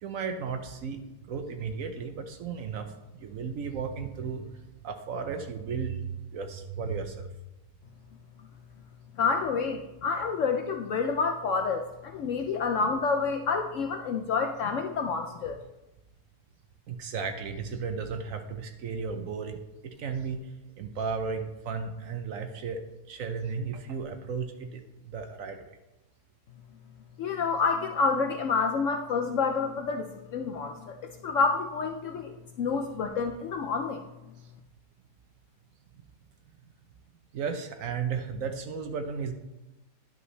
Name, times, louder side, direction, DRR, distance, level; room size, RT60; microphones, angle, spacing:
voice 1, 0.0-2.9 3.2-4.5 4.8-7.3 16.9-20.4 20.8-25.8 37.3-39.3, right 5 dB, 65° right, 7 dB, 0.9 m, -34 dB
voice 2, 9.2-15.6 27.2-34.0, left 4 dB, 70° left, 5 dB, 0.7 m, -28 dB
10.5 x 5.4 x 3.1 m, 0.98 s
omnidirectional pair, 1.7 m